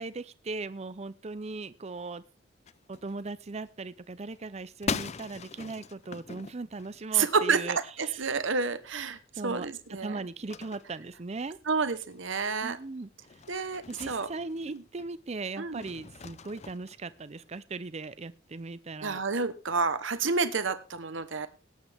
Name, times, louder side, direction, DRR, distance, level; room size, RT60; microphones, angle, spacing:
voice 1, 0.0-2.2 2.9-8.4 9.4-9.7 10.0-11.6 12.6-13.4 13.9-19.2, right 3 dB, 35° right, 15 dB, 0.6 m, -38 dB
sound 1, 2.6-3.7 4.0-7.6 8.0-8.2 8.5-8.6 8.8-15.1 15.7-17.6, left 5 dB, 35° left, 0.5 m, -42 dB
voice 2, 7.1-7.6 8.0-10.2 11.7-12.8 13.5-14.3 14.7-14.8 15.6-15.8 19.0-21.5, right 5 dB, 70° right, 11 dB, 1.1 m, -29 dB
18.5 x 9.5 x 3.5 m, 0.32 s
head